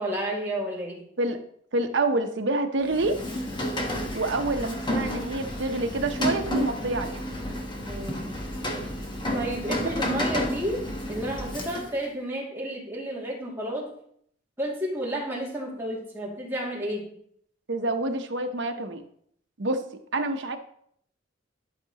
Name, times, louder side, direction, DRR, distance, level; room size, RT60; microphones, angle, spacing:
voice 1, 0.0-1.0 7.9-8.3 9.3-13.9 14.6-17.0, right 1 dB, 15° right, -4 dB, 2.3 m, -31 dB
voice 2, 1.7-3.2 4.1-7.2 9.7-9.9 17.7-19.0 19.6-19.8 20.1-20.6, right 2 dB, 75° right, 6 dB, 0.8 m, -27 dB
Rain, 2.8-12.1, equal, 25° left, 1.1 m, -31 dB
sound 1, 3.9-11.6, equal, 45° left, 3.1 m, -43 dB
11.5 x 5.7 x 2.9 m, 0.66 s
head